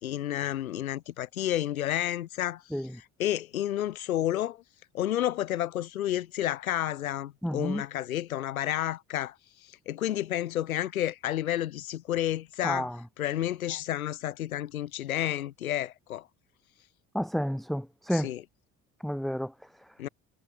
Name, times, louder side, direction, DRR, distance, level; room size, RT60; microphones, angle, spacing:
voice 1, 0.0-4.6 4.9-16.3 18.1-18.4 20.0-20.1, left 12 dB, 90° left, 2.4 m, -31 dB
voice 2, 7.4-7.8 12.6-12.9 17.1-18.3 19.0-19.5, equal, ahead, 2.8 m, -30 dB
hypercardioid pair, 60°, 41 cm